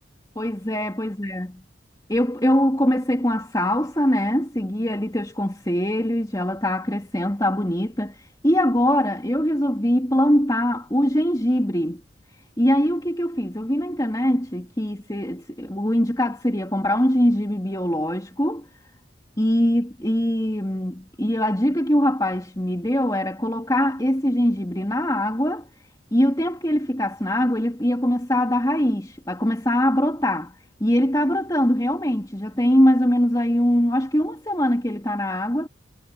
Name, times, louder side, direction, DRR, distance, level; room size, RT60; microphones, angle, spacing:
voice 1, 0.3-1.5 2.1-8.2 8.4-12.0 12.6-18.7 19.4-25.7 26.1-30.5 30.8-35.7, equal, 20° left, 2.8 m, -22 dB
head